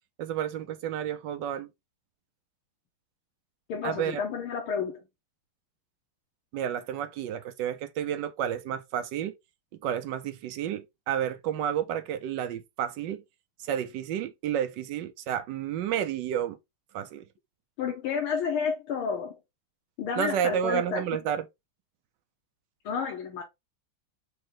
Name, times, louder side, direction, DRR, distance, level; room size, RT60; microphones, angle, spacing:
voice 1, 0.2-1.7 3.8-4.2 6.5-9.3 9.8-13.2 13.7-16.6 16.9-17.2 20.2-21.5, right 9 dB, 75° right, 1.1 m, -31 dB
voice 2, 3.7-5.0 17.8-19.4 20.0-21.1 22.9-23.4, left 6 dB, 85° left, 1.8 m, -30 dB
4.3 x 2.9 x 3.7 m
omnidirectional pair, 2.2 m